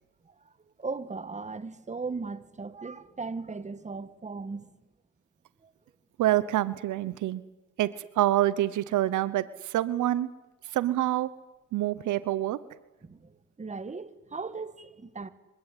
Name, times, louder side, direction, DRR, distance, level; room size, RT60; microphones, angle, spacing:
voice 1, 0.8-4.7 5.6-5.7 13.0-15.3, right 4 dB, 25° right, 1.7 m, -37 dB
voice 2, 6.2-7.4 7.8-10.3 10.7-11.3 11.7-12.6, right 14 dB, 80° right, 1.0 m, -26 dB
25.0 x 16.0 x 9.9 m
cardioid pair, 90°, 30 cm